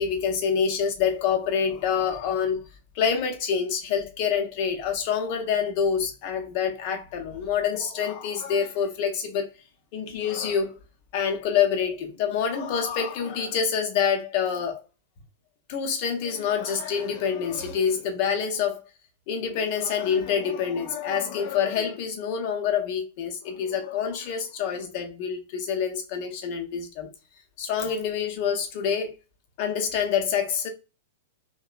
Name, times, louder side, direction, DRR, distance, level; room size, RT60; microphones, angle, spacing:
voice 1, 0.0-2.6 2.9-9.5 9.9-10.8 11.1-14.8 15.7-18.8 19.3-27.1 27.6-29.2 29.6-30.7, left 7 dB, 45° left, 0.7 m, -26 dB
2.8 x 2.1 x 2.4 m
figure-of-eight pair, 100°, 0 cm